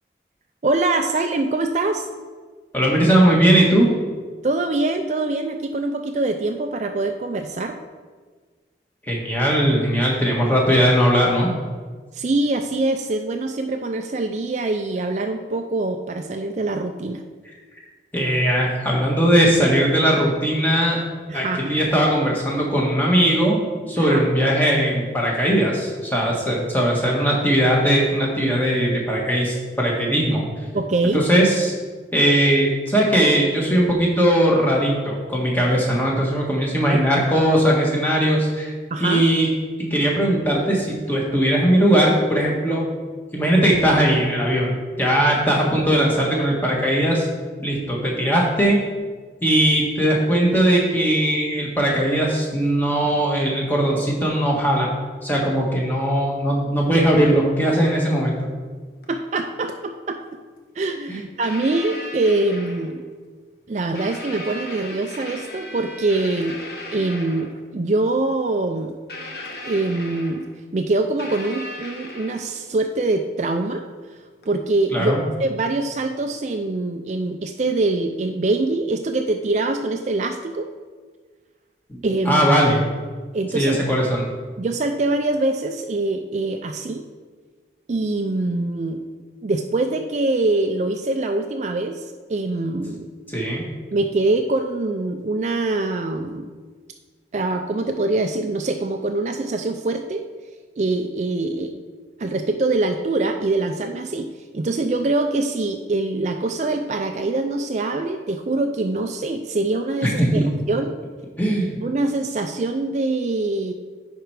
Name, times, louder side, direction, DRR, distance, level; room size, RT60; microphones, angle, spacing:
voice 1, 0.6-2.1 4.4-7.8 12.1-17.2 21.3-21.8 24.0-24.2 30.7-31.3 36.9-37.0 38.9-39.2 59.1-60.2 60.8-63.0 63.7-66.7 66.9-69.0 69.6-70.5 70.7-73.9 74.5-80.7 82.0-82.5 83.3-83.8 84.6-87.0 87.9-89.1 89.4-93.1 93.9-96.5 97.3-100.2 100.8-101.8 102.2-104.3 104.5-110.4 110.7-111.0 111.8-113.7, right 2 dB, 40° right, 6 dB, 0.4 m, -24 dB
voice 2, 2.7-3.9 9.1-11.5 18.1-21.0 21.3-23.6 23.9-30.4 31.1-31.7 32.1-38.7 39.0-39.5 39.8-42.9 43.3-44.7 45.0-47.3 47.6-48.8 49.4-54.9 55.2-58.4 61.1-61.2 74.9-75.2 81.9-82.0 82.3-82.8 83.5-84.2 93.3-93.6 110.0-110.4 111.4-111.7, right 1 dB, 10° left, -3 dB, 1.4 m, -19 dB
sound 1, 58.1-58.2 59.0-59.1 60.8-60.9 61.4-63.1 64.0-67.6 69.1-70.6 71.2-72.7 74.4-74.6, left 1 dB, 60° left, 1.2 m, -37 dB
9.8 x 4.5 x 4.7 m, 1.5 s
head